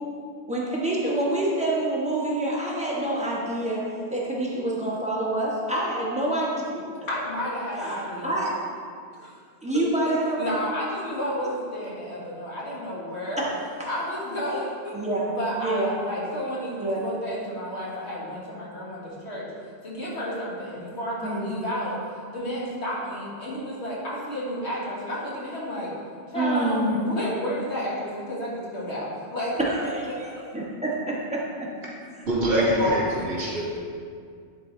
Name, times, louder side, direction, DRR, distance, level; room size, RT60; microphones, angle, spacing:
voice 1, 0.5-3.8 4.1-6.8 7.8-7.9 8.2-8.5 9.6-10.6 13.4-13.5 14.9-15.3 15.6-15.9 16.8-17.1 21.2-21.5 26.3-27.1 29.6-31.7 32.8-33.0, right 1 dB, 5° right, -6 dB, 1.3 m, -27 dB
voice 2, 7.1-8.4 9.2-9.3 10.4-13.4 13.9-15.0 15.3-19.5 19.8-22.0 22.3-25.9 26.3-29.6 30.1-30.4, equal, 80° left, -6 dB, 2.0 m, -31 dB
voice 3, 32.3-33.8, equal, 60° right, -8 dB, 2.4 m, -24 dB
10.5 x 4.0 x 3.9 m, 2.2 s
omnidirectional pair, 1.1 m